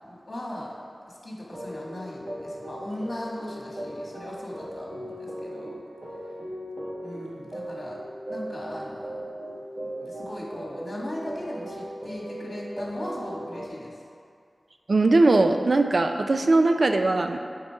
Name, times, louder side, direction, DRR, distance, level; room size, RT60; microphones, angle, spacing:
voice 1, 0.0-0.7 1.1-5.8 7.0-8.0 8.3-9.3 10.0-14.0, left 1 dB, 45° left, -3 dB, 1.7 m, -38 dB
sound 1, 1.5-13.7, right 1 dB, 40° right, 1.3 m, -38 dB
voice 2, 14.9-17.4, right 2 dB, 65° right, 6 dB, 0.4 m, -20 dB
9.7 x 4.0 x 4.6 m, 2.2 s
wide cardioid pair, 80°, 0 cm